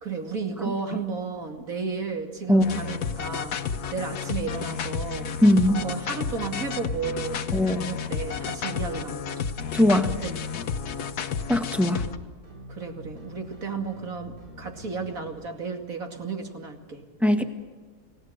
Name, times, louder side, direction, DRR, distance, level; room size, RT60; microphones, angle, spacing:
voice 1, 0.0-5.3 5.7-9.4 10.2-10.4 12.7-17.0, right 5 dB, 60° right, 3 dB, 2.9 m, -33 dB
voice 2, 2.5-2.8 5.4-5.8 7.5-7.9 9.7-10.1 11.5-12.1 17.2-17.4, left 1 dB, ahead, 5 dB, 1.6 m, -20 dB
sound 1, 2.6-12.2, left 7 dB, 80° left, 1.5 m, -32 dB
sound 2, 2.8-15.4, left 1 dB, 85° right, 8.6 m, -46 dB
30.0 x 18.0 x 6.6 m, 1.3 s
omnidirectional pair, 1.6 m